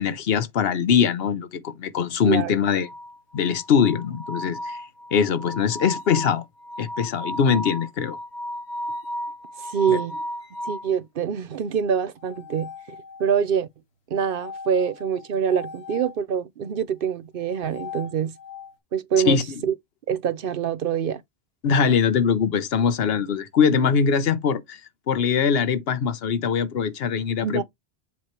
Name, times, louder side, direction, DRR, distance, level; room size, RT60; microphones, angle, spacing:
voice 1, 0.0-2.9 3.3-4.8 5.1-6.4 6.8-8.2 9.9-10.0 19.3-19.4 21.6-24.8 25.1-27.6, left 6 dB, 70° left, 1.0 m, -22 dB
voice 2, 2.2-2.6 9.6-10.2 10.6-12.7 13.2-13.7 14.1-18.4 18.9-19.7 20.1-21.2 27.4-27.6, right 7 dB, 60° right, 0.8 m, -25 dB
sound 1, 2.8-10.9 12.2-13.5 14.2-16.2 17.4-18.7, left 1 dB, 90° left, 1.8 m, -36 dB
7.3 x 3.1 x 4.3 m
omnidirectional pair, 1.1 m